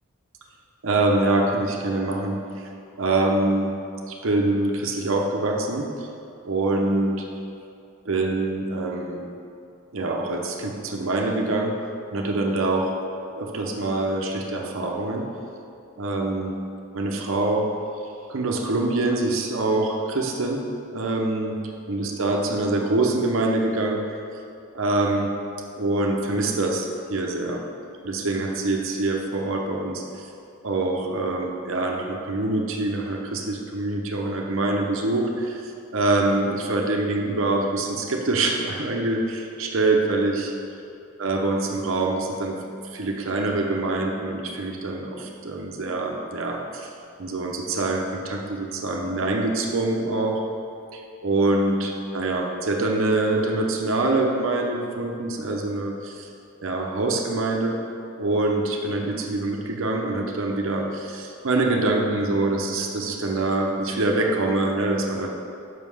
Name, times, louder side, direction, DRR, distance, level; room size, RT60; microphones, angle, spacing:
voice 1, 0.8-2.7 3.0-3.7 4.1-6.1 6.4-7.2 8.0-9.3 9.9-11.7 12.1-13.0 13.4-15.2 16.0-16.5 16.9-17.7 18.3-20.6 20.9-21.6 21.9-24.0 24.7-25.3 25.7-27.6 28.0-30.3 30.6-40.5 41.2-42.6 42.8-46.9 47.2-50.4 50.9-56.3 56.6-57.8 58.2-65.3, right 2 dB, 70° right, 1 dB, 0.8 m, -25 dB
5.9 x 5.6 x 6.2 m, 2.5 s
head